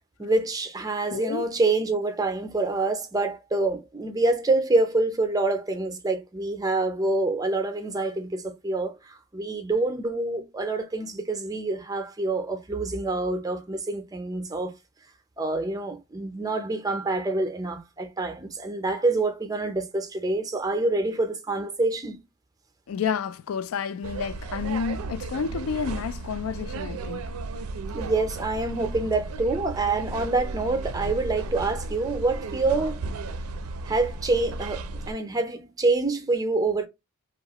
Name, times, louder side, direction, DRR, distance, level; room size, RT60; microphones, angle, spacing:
voice 1, 0.2-14.7 15.4-22.2 27.9-33.0 33.9-36.9, right 2 dB, 15° right, 0.5 m, -26 dB
voice 2, 1.1-1.5 22.9-27.3, left 6 dB, 75° left, 0.3 m, -30 dB
sound 1, 24.0-35.1, right 3 dB, 90° right, 0.4 m, -34 dB
2.8 x 2.4 x 2.8 m
head